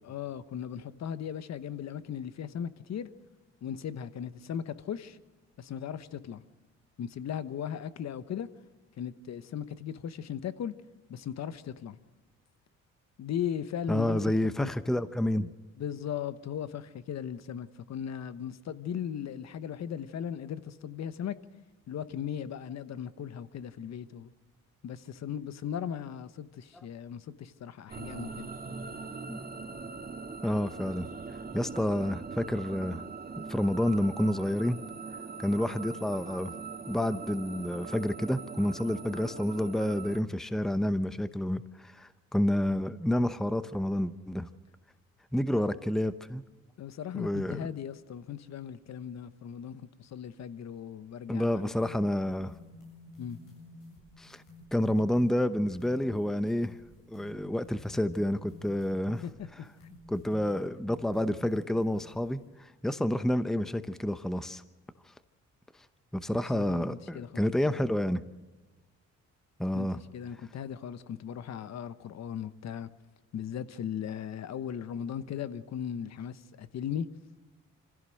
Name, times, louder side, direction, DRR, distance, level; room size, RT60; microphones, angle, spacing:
voice 1, 0.0-3.1 3.6-5.2 5.6-6.4 7.0-8.5 9.0-10.7 11.1-12.0 13.2-14.2 14.6-14.7 15.8-21.4 21.9-24.3 24.8-28.5 46.8-51.5 53.2-53.4 59.2-59.5 66.3-67.5 69.7-72.9 73.3-77.1, left 9 dB, 60° left, 1.1 m, -37 dB
voice 2, 13.9-15.5 29.3-29.4 30.4-31.1 31.5-33.0 33.4-34.8 35.4-36.5 36.9-44.5 45.3-46.4 47.1-47.7 51.3-52.5 54.2-54.4 54.7-56.8 57.1-59.2 60.1-64.6 66.1-68.2 69.6-70.0, left 1 dB, ahead, 0.8 m, -29 dB
sound 1, 27.9-40.2, right 4 dB, 30° right, 2.0 m, -41 dB
sound 2, 51.8-62.5, left 2 dB, 85° left, 8.0 m, -52 dB
25.5 x 16.0 x 6.4 m
cardioid pair, 90°, 30 cm